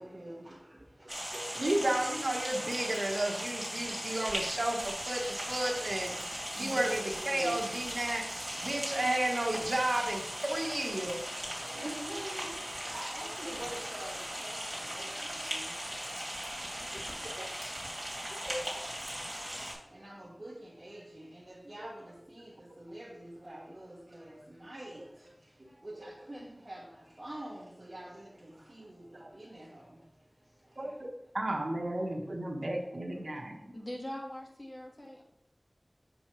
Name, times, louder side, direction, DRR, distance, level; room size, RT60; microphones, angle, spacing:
voice 1, 0.0-2.1 6.4-7.8 8.5-9.0 10.5-10.7 11.6-15.8 17.0-17.1 19.9-25.1 25.8-30.0, right 1 dB, 45° right, 1.3 m, -46 dB
sound 1, 1.1-19.7, equal, 20° right, 2.6 m, -38 dB
voice 2, 1.3-6.1 6.6-7.0 7.3-8.3 8.6-11.2 18.4-18.6 25.6-25.7 30.8-30.9 31.3-33.7, right 1 dB, 65° right, 1.2 m, -32 dB
voice 3, 33.7-35.2, left 1 dB, 40° left, 1.5 m, -42 dB
7.6 x 5.2 x 3.2 m
wide cardioid pair, 50°, 0 cm